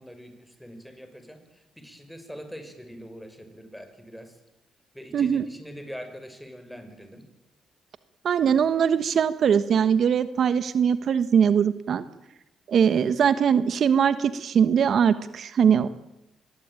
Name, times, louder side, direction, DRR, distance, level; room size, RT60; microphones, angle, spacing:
voice 1, 0.0-4.4 4.9-7.2, equal, ahead, 8 dB, 6.1 m, -43 dB
voice 2, 5.1-5.5 8.2-12.0 12.7-15.9, right 7 dB, 60° right, 12 dB, 1.3 m, -21 dB
26.5 x 21.5 x 9.2 m, 0.96 s
cardioid pair, 90°, 0 cm